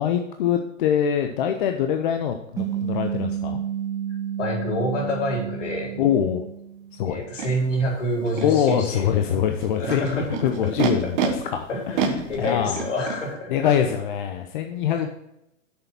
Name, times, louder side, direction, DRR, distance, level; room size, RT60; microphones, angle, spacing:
voice 1, 0.0-3.6 6.0-6.4 7.0-7.2 8.4-11.2 11.5-11.6 12.0-12.8 13.5-15.1, left 9 dB, 40° left, 5 dB, 0.8 m, -24 dB
sound 1, 2.6-7.2, right 9 dB, 10° right, 0.7 m, -31 dB
voice 2, 4.4-6.0 7.0-9.4 9.8-10.3 10.8-11.3 11.7-13.5 13.8-13.9 14.9-15.1, equal, 65° left, -1 dB, 4.3 m, -28 dB
Animal, 7.4-7.5 8.3-8.8 9.6-11.3 11.9-13.2, right 7 dB, 35° right, 1.5 m, -27 dB
8.0 x 6.8 x 5.8 m, 0.81 s
hypercardioid pair, 140°, 39 cm